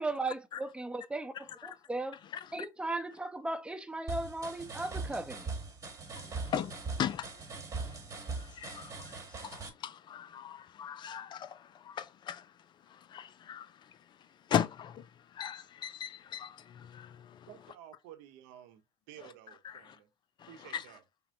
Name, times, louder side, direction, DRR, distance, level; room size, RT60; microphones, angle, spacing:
voice 1, 0.0-2.2 2.5-5.5, right 2 dB, 10° right, 0.9 m, -37 dB
sound 1, 4.1-9.7, right 4 dB, 25° right, 1.3 m, -41 dB
voice 2, 6.2-7.3 8.3-12.5 12.9-13.9 14.5-15.1 15.3-17.5 19.6-20.0 20.4-20.8, left 9 dB, 40° left, 0.4 m, -38 dB
voice 3, 17.5-20.1 20.5-21.0, right 11 dB, 70° right, 0.9 m, -53 dB
5.6 x 2.2 x 3.9 m
hypercardioid pair, 80°, 12 cm